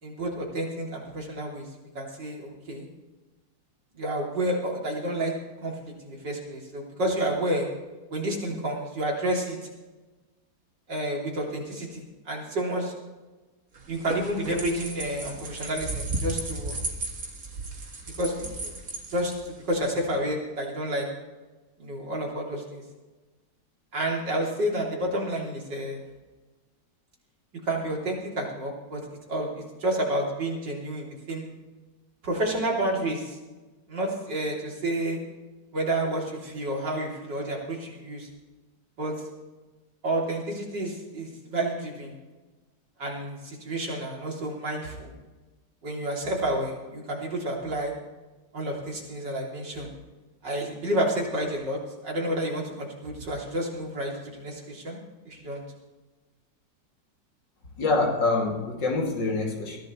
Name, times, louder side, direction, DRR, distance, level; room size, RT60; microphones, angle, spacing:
voice 1, 0.0-1.7 2.0-2.9 3.9-5.3 5.6-7.7 8.1-9.6 10.9-12.9 13.9-16.7 18.2-18.7 19.1-19.3 19.7-21.1 21.8-22.8 23.9-26.0 27.6-29.0 29.3-29.5 29.8-31.5 32.2-33.4 33.9-35.2 35.7-38.3 39.0-39.1 40.0-42.1 43.0-45.1 45.8-47.9 48.5-49.9 50.4-55.0 55.3-55.6, right 1 dB, 65° right, -2 dB, 3.7 m, -30 dB
sound 1, 13.7-19.8, right 2 dB, 45° right, 2.2 m, -35 dB
voice 2, 57.8-59.8, left 3 dB, 70° left, -1 dB, 3.3 m, -25 dB
22.0 x 15.0 x 3.2 m, 1.2 s
omnidirectional pair, 2.0 m